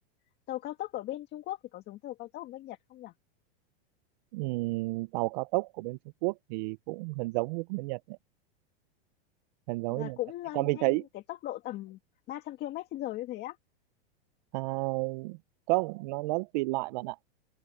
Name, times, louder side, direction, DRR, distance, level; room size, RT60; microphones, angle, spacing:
voice 1, 0.5-3.1 9.9-11.0 11.3-12.0 12.3-13.6, left 15 dB, 35° left, 2.0 m, -38 dB
voice 2, 4.3-8.2 9.7-10.2 10.5-11.0 14.5-15.4 15.7-17.2, right 24 dB, 45° right, 0.4 m, -31 dB
open air
supercardioid pair, 140°, 31 cm